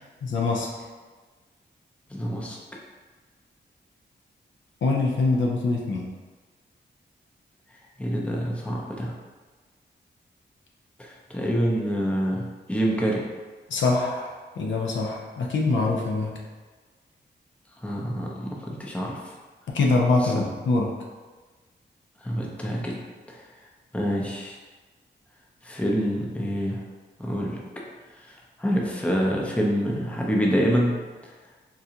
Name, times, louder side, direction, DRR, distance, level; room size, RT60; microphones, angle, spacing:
voice 1, 0.2-0.7 4.8-6.0 13.7-16.4 19.7-20.9, left 3 dB, 80° left, -1 dB, 0.5 m, -24 dB
voice 2, 2.1-2.6 8.0-9.2 11.0-13.2 17.8-19.3 20.2-20.3 22.2-23.0 23.3-23.4 23.9-24.6 25.6-26.8 27.2-27.6 28.2-31.0, equal, 5° left, -2 dB, 0.6 m, -26 dB
3.8 x 2.3 x 2.7 m, 1.3 s
wide cardioid pair, 90°, 19 cm